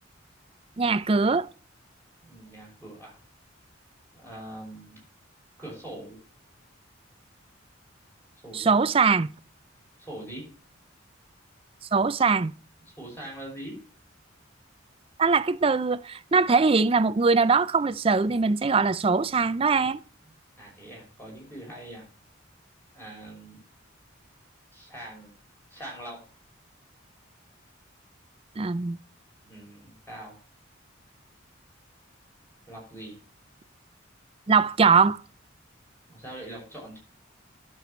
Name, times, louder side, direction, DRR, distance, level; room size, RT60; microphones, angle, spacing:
voice 1, 0.8-1.5 8.5-9.3 11.9-12.5 15.2-20.0 28.6-29.0 34.5-35.2, right 4 dB, 30° right, 0.4 m, -22 dB
voice 2, 2.2-3.2 4.1-5.0 5.6-6.2 8.4-8.8 10.0-10.5 13.0-13.8 20.6-22.0 22.9-23.6 24.7-25.3 25.7-26.2 29.4-30.3 32.7-33.2 36.1-37.0, right 1 dB, 10° left, 6.2 m, -42 dB
11.5 x 7.0 x 4.3 m
head